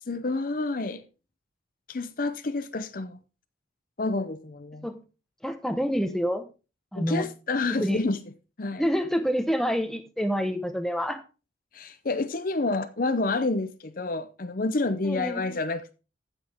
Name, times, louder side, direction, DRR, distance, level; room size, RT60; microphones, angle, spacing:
voice 1, 0.1-1.0 1.9-3.2 4.0-4.9 6.9-8.2 8.6-8.8 11.7-15.9, left 3 dB, 45° left, 0.6 m, -29 dB
voice 2, 5.4-6.5 6.9-7.3 7.7-8.0 8.8-11.2 15.0-15.4, equal, ahead, 0.9 m, -27 dB
15.0 x 5.9 x 3.5 m
head